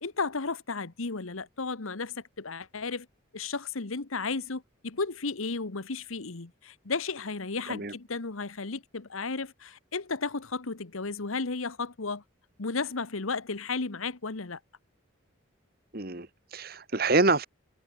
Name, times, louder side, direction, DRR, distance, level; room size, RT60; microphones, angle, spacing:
voice 1, 0.0-3.1 3.3-12.2 12.6-14.6, left 4 dB, 85° left, 1.3 m, -34 dB
voice 2, 15.9-17.5, right 3 dB, 45° right, 1.8 m, -26 dB
head